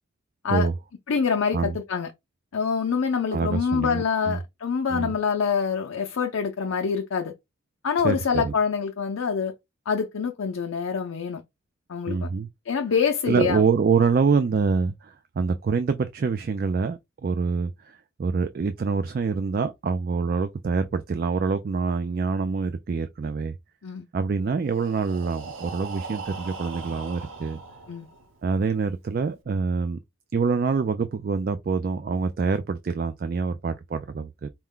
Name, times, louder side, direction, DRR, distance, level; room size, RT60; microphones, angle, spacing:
voice 1, 1.1-2.1 2.5-7.3 7.8-9.5 9.9-11.4 11.9-12.3 12.7-13.6 23.8-24.1 27.9-28.1, left 6 dB, 90° left, 0.5 m, -25 dB
voice 2, 3.3-4.4 4.9-5.1 8.0-8.5 12.1-12.5 13.3-23.5 24.1-27.6 28.4-30.0 30.3-34.5, right 5 dB, 45° right, 0.3 m, -26 dB
Breathing, 24.6-28.4, right 4 dB, 80° right, 0.9 m, -39 dB
4.4 x 2.1 x 3.6 m
head